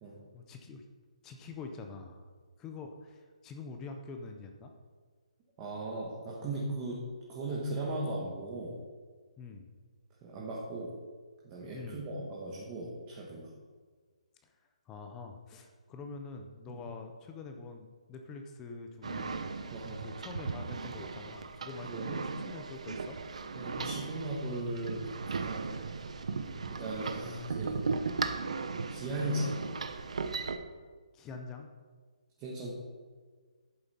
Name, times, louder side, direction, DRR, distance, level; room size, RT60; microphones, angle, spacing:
voice 1, 0.3-0.8 1.2-2.3 2.6-4.7 9.4-9.7 11.7-12.0 14.4-14.5 14.9-19.4 20.0-23.2 26.4-26.7 31.1-31.7, left 4 dB, 10° left, 5 dB, 0.5 m, -45 dB
voice 2, 5.6-7.0 7.3-8.8 10.2-10.9 11.4-13.5 16.7-16.8 19.7-20.0 21.8-22.3 23.5-25.7 26.7-27.8 28.9-29.6 32.4-32.9, right 1 dB, 15° right, -4 dB, 1.2 m, -37 dB
sound 1, 19.0-30.6, right 4 dB, 60° right, 0.9 m, -37 dB
11.0 x 8.6 x 4.3 m, 1.5 s
hypercardioid pair, 175°, 4 cm